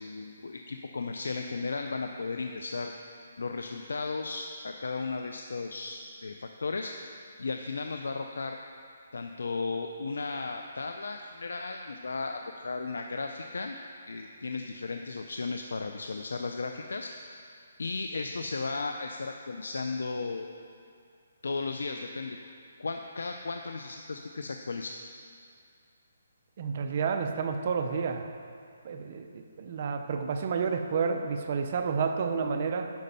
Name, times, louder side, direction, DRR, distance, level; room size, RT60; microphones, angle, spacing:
voice 1, 0.0-2.9 3.4-6.9 7.4-8.6 9.1-13.8 14.1-17.1 17.8-20.5 21.4-22.4 22.8-25.0, left 3 dB, 85° left, 5 dB, 0.5 m, -35 dB
voice 2, 26.6-28.3 28.8-32.9, right 5 dB, 40° right, 5 dB, 0.6 m, -30 dB
10.5 x 5.1 x 5.5 m, 2.4 s
hypercardioid pair, 165°, 0 cm